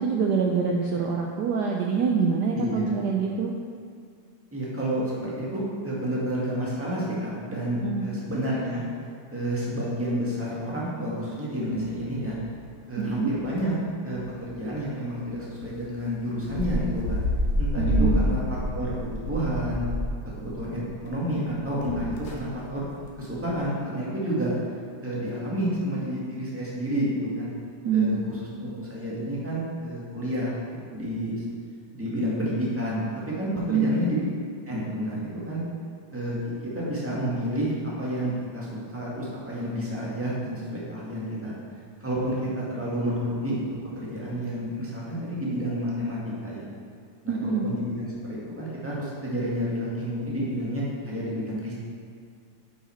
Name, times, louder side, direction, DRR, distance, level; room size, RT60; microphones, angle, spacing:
voice 1, 0.0-3.5 7.8-8.1 13.0-13.3 17.8-18.3 27.8-28.2 33.7-34.0 47.3-47.7, right 5 dB, 75° right, 1 dB, 1.1 m, -25 dB
voice 2, 2.5-2.9 4.5-8.8 9.3-12.3 12.9-13.7 14.0-17.2 17.6-18.4 18.7-19.8 20.4-22.9 23.2-24.5 25.0-27.5 27.9-30.5 30.8-31.3 31.9-33.0 33.4-34.2 34.7-35.6 36.1-36.4 36.7-41.5 42.0-43.5 43.9-46.7 47.2-51.7, equal, 5° right, -7 dB, 1.6 m, -30 dB
sound 1, 11.7-12.4 12.7-12.8 13.1-13.6 14.2-14.4 14.7-14.8 15.6-15.7 16.3-21.1 21.4-23.1 23.4-23.6, left 1 dB, 80° left, 1.8 m, -28 dB
8.8 x 5.5 x 4.4 m, 2.3 s
omnidirectional pair, 2.0 m